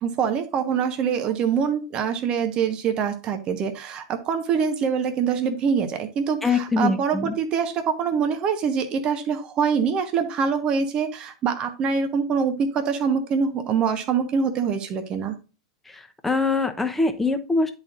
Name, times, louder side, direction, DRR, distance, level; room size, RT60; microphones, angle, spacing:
voice 1, 0.0-15.4, right 6 dB, 40° right, 7 dB, 1.1 m, -24 dB
voice 2, 6.4-7.3 15.9-17.7, left 3 dB, 10° left, 5 dB, 1.1 m, -23 dB
10.5 x 4.3 x 2.5 m, 0.32 s
hypercardioid pair, 95°, 2 cm